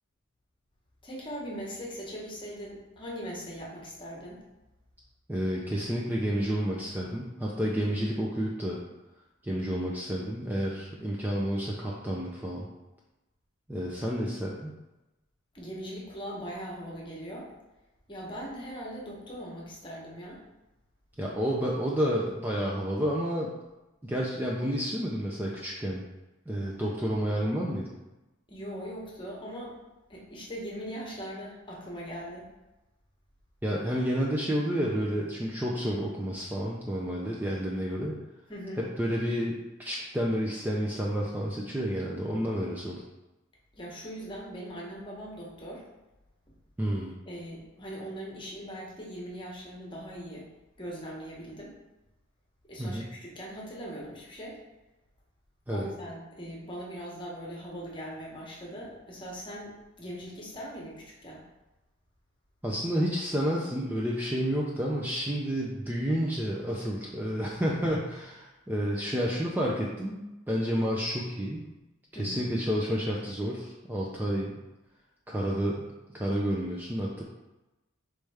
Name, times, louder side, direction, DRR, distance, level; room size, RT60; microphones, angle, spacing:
voice 1, 1.0-4.4 15.5-17.5 18.1-20.4 28.5-29.8 30.1-32.5 38.5-38.8 43.7-45.8 47.3-50.5 50.8-51.8 52.7-54.6 55.7-61.4 72.1-72.5, equal, 25° left, -4 dB, 1.1 m, -40 dB
voice 2, 5.3-8.8 9.4-12.7 13.7-14.7 21.2-23.5 24.0-26.0 26.5-27.9 33.6-38.2 38.8-43.0 46.8-47.1 52.8-53.0 55.7-55.9 62.6-70.2 70.5-71.6 72.2-74.6 75.3-77.2, equal, 10° right, -4 dB, 0.4 m, -30 dB
4.8 x 3.2 x 3.4 m, 1.0 s
head